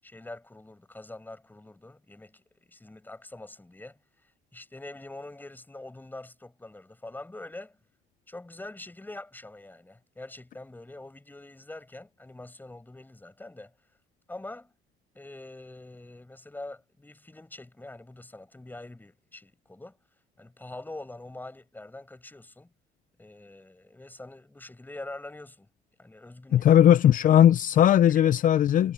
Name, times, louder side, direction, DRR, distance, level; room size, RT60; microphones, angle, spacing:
voice 1, 0.0-7.8 8.3-13.7 14.3-14.7 15.1-20.0 20.4-22.7 23.2-25.7 26.0-26.7 27.9-28.3, left 2 dB, 10° left, 7.0 m, -44 dB
voice 2, 26.5-28.9, left 10 dB, 50° left, 0.6 m, -18 dB
cardioid pair, 110°, 17 cm